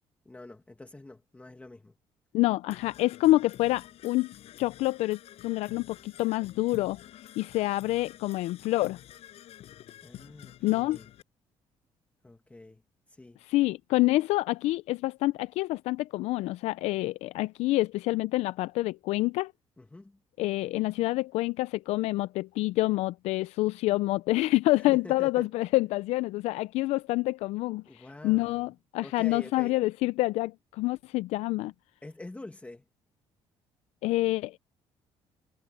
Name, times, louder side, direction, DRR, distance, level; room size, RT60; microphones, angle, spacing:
voice 1, 0.3-1.9 10.0-11.1 12.2-12.8 13.1-13.4 19.8-20.2 24.8-25.5 27.9-28.7 29.0-29.8 32.0-32.8, left 2 dB, 15° left, 1.8 m, -46 dB
voice 2, 2.3-4.3 4.6-7.0 7.4-9.0 10.6-11.0 13.4-19.5 20.4-31.7 34.0-34.6, left 18 dB, 90° left, 0.4 m, -27 dB
Percussion / Brass instrument, 2.7-11.2, left 12 dB, 75° left, 7.0 m, -49 dB
cardioid pair, 105°, 11 cm